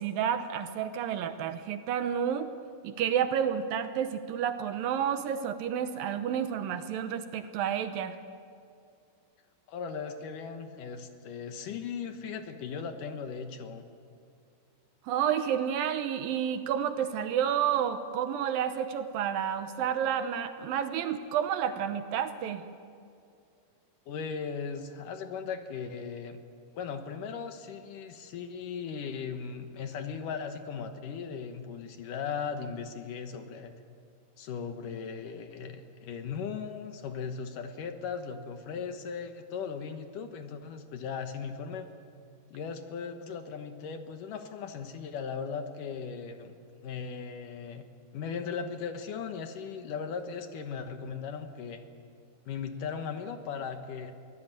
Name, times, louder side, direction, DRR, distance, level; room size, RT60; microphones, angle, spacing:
voice 1, 0.0-2.5 2.8-8.2 15.0-22.6, right 9 dB, 75° right, 9 dB, 2.6 m, -30 dB
voice 2, 9.7-13.9 24.1-26.4 26.8-33.7 34.4-41.9 42.5-46.5 46.8-47.8 48.1-51.8 52.5-54.1, left 6 dB, 70° left, 7 dB, 2.6 m, -38 dB
23.5 x 18.0 x 8.9 m, 2.4 s
omnidirectional pair, 4.4 m